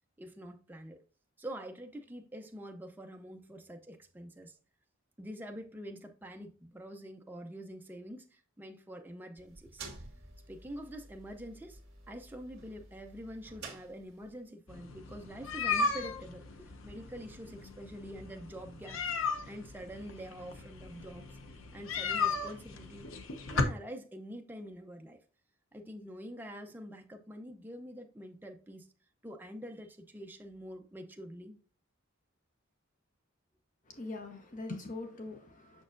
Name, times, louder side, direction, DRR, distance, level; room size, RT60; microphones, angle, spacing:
voice 1, 0.2-1.0 1.4-4.6 5.2-9.9 10.5-11.8 12.1-21.3 21.7-23.1 23.5-25.2 25.7-28.9 29.2-31.6, equal, 10° right, 0.6 m, -46 dB
sound 1, 9.4-14.5, right 3 dB, 55° right, 1.9 m, -51 dB
sound 2, 14.7-23.6, left 4 dB, 75° left, 0.8 m, -36 dB
voice 2, 33.9-35.8, left 2 dB, 40° left, 1.0 m, -42 dB
6.4 x 6.0 x 2.5 m
head